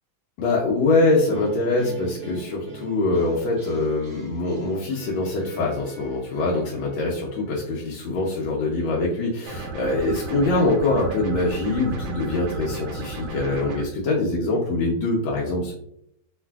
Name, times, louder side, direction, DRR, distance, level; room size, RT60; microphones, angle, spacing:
voice 1, 0.4-15.7, left 2 dB, 80° left, -4 dB, 1.3 m, -24 dB
sound 1, 1.3-8.4, right 1 dB, 75° right, 0.8 m, -42 dB
sound 2, 9.5-13.9, right 2 dB, 90° right, 1.4 m, -33 dB
3.1 x 2.6 x 2.3 m, 0.74 s
omnidirectional pair, 2.1 m